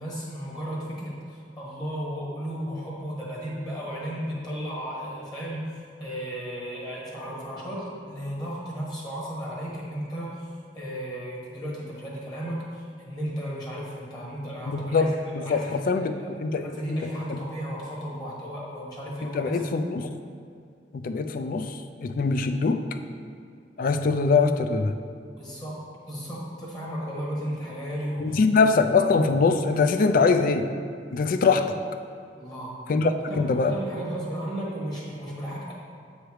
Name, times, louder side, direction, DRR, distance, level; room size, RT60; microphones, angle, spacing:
voice 1, 0.0-15.1 15.4-16.3 16.6-19.8 25.4-28.4 32.4-32.8 33.3-35.7, equal, 25° left, -5 dB, 1.2 m, -34 dB
voice 2, 14.7-17.0 17.3-17.4 19.2-20.1 20.9-22.9 23.8-24.9 28.2-30.7 31.1-31.8 32.9-33.7, left 4 dB, 50° left, 8 dB, 0.3 m, -23 dB
7.7 x 3.2 x 4.8 m, 2.3 s
head